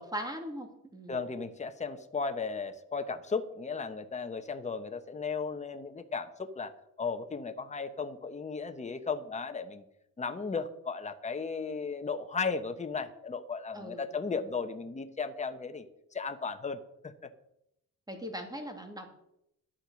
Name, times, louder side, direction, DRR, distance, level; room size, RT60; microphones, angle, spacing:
voice 1, 0.0-1.2 13.7-14.0 18.1-19.1, equal, 10° right, 4 dB, 2.6 m, -40 dB
voice 2, 1.1-9.8 10.2-15.9 16.1-16.8 17.0-17.1, left 5 dB, 20° left, 8 dB, 1.0 m, -35 dB
12.0 x 8.9 x 6.3 m, 0.81 s
cardioid pair, 105°, 33 cm